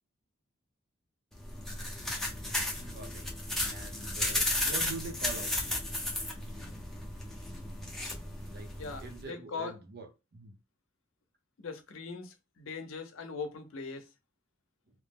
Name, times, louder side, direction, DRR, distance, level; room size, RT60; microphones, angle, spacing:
sound 1, 1.3-9.2, left 1 dB, ahead, 0.6 m, -34 dB
voice 1, 2.8-3.2 3.6-5.5 8.5-8.7 9.0-10.1 10.3-10.5, right 3 dB, 50° right, 0.7 m, -44 dB
voice 2, 8.8-9.7 11.6-14.0, left 4 dB, 80° left, 0.6 m, -40 dB
2.9 x 2.0 x 3.4 m
head